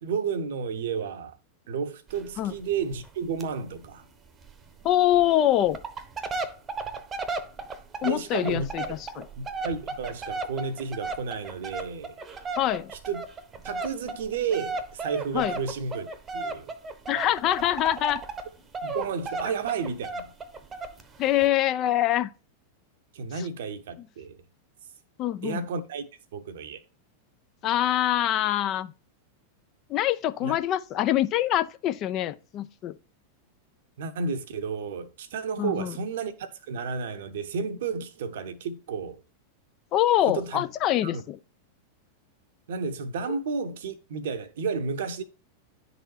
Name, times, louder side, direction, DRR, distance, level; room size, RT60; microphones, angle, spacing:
voice 1, 0.0-1.4 1.7-4.0 8.0-8.9 9.4-12.2 12.9-13.2 13.6-16.1 16.3-16.7 18.8-20.3 23.1-24.4 25.4-26.0 26.3-26.8 30.4-30.6 34.0-39.2 40.3-40.6 41.0-41.2 42.7-45.2, right 5 dB, 60° right, 0.8 m, -32 dB
sound 1, 2.1-2.3 2.5-2.6 2.9-3.1 3.4-3.5 3.8-3.9 4.5-4.6 5.2-5.3 5.7-18.5 18.7-21.0 21.4-21.5, right 3 dB, 20° right, 0.9 m, -35 dB
voice 2, 4.8-5.8 8.0-9.3 12.6-12.9 15.3-15.5 17.1-18.2 21.2-22.3 25.2-25.6 27.6-28.9 29.9-33.0 35.6-35.9 39.9-41.4 43.3-43.4, left 12 dB, 35° left, 0.4 m, -24 dB
10.5 x 4.1 x 2.8 m
figure-of-eight pair, 90°, 0 cm